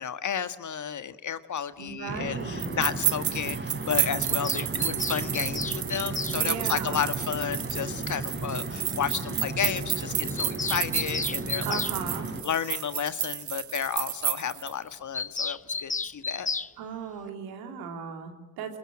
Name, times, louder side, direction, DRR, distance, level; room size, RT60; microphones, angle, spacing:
voice 1, 0.0-11.8 12.4-16.5, left 8 dB, 50° left, 11 dB, 1.7 m, -32 dB
voice 2, 1.8-2.8 6.3-7.1 11.6-12.3 16.8-18.8, right 6 dB, 75° right, 5 dB, 3.3 m, -37 dB
sound 1, 2.1-12.4, right 3 dB, 30° right, 4.9 m, -35 dB
sound 2, 2.6-14.7, right 10 dB, 50° right, 0.9 m, -31 dB
Bird vocalization bird call bird song, 4.2-6.4 7.8-7.9 8.2-8.3 8.5-8.6 8.9-9.0 9.2-9.3 9.6-9.7 10.0-12.0 15.1-16.7, left 4 dB, 20° left, 0.9 m, -33 dB
24.0 x 21.0 x 7.7 m, 1.2 s
hypercardioid pair, 45°, 37 cm